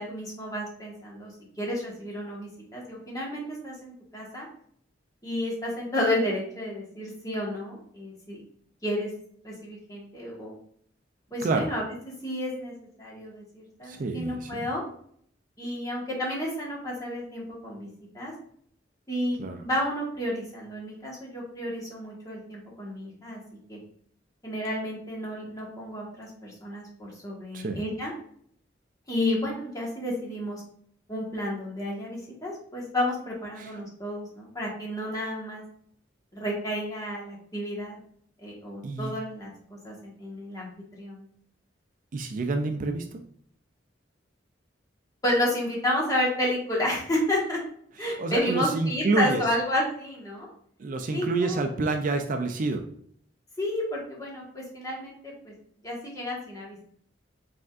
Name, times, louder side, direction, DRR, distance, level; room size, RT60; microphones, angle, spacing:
voice 1, 0.0-1.3 1.6-4.5 5.2-8.4 8.8-9.1 9.4-10.5 11.3-11.8 12.2-14.8 15.6-17.9 18.1-18.3 19.1-23.4 23.7-23.8 24.4-28.1 29.1-30.6 31.1-35.6 36.3-38.0 38.4-40.7 41.0-41.3 45.2-47.6 48.0-50.5 51.1-51.6 53.6-55.5 55.8-56.8, left 1 dB, 20° left, -4 dB, 1.3 m, -31 dB
voice 2, 13.9-14.7 19.4-19.6 27.5-27.8 33.6-33.7 38.8-39.1 42.1-43.2 48.0-49.4 50.8-52.8, right 3 dB, 45° right, 6 dB, 0.4 m, -28 dB
5.1 x 3.5 x 2.4 m, 0.63 s
head